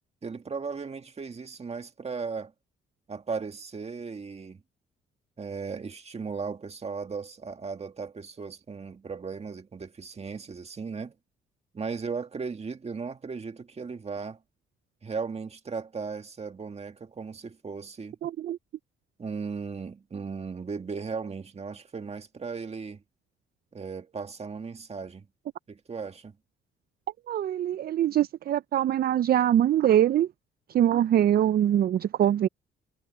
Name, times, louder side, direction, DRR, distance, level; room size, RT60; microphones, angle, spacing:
voice 1, 0.2-2.5 3.1-4.6 5.4-11.2 11.7-14.4 15.0-18.2 19.2-23.0 23.7-25.3 25.7-26.4, right 5 dB, 30° right, 1.9 m, -36 dB
voice 2, 18.2-18.6 27.3-30.3 30.7-32.5, right 11 dB, 50° right, 0.4 m, -23 dB
cardioid pair, 90°, 20 cm